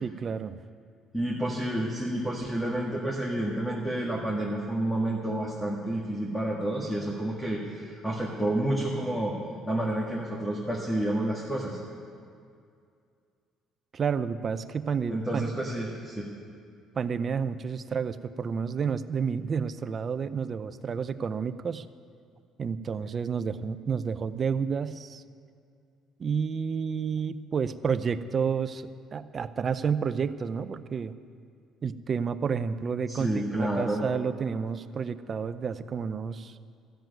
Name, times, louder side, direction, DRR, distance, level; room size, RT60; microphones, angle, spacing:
voice 1, 0.0-0.6 13.9-15.5 16.9-21.8 22.6-25.2 26.2-31.1 31.8-36.6, right 6 dB, 40° right, 13 dB, 0.6 m, -30 dB
voice 2, 1.1-9.4 9.7-11.8 15.1-16.3 33.1-34.0, right 1 dB, 10° left, -2 dB, 1.7 m, -30 dB
14.0 x 7.7 x 9.2 m, 2.3 s
cardioid pair, 100°, 0 cm